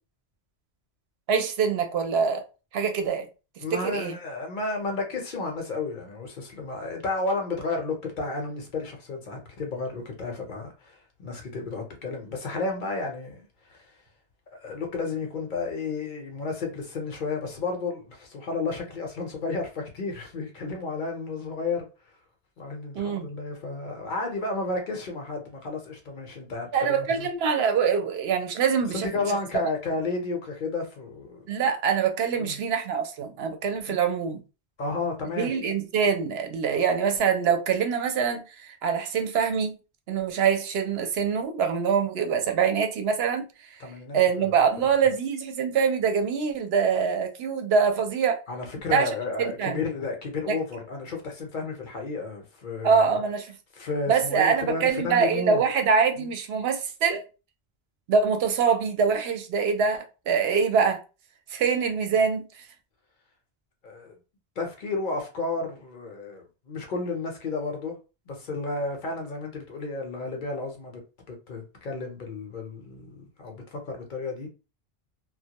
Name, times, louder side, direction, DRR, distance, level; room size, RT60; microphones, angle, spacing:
voice 1, 1.3-2.5 2.7-3.3 3.7-4.1 22.9-23.3 26.7-29.1 31.5-34.4 35.4-39.8 40.1-43.8 44.1-48.4 48.9-49.1 49.4-49.8 50.5-50.6 52.8-53.5 54.1-57.2 58.1-61.0 61.5-62.7, right 6 dB, 75° right, 0.8 m, -24 dB
voice 2, 3.6-13.9 14.5-21.9 22.6-27.3 28.9-31.4 32.4-32.6 33.9-34.0 34.8-35.5 43.8-44.7 48.5-53.0 53.7-55.6 56.2-56.3 63.8-64.1 64.6-68.0 68.3-71.0 71.3-74.5, left 3 dB, 55° left, 0.7 m, -32 dB
2.1 x 2.1 x 2.8 m
omnidirectional pair, 1.1 m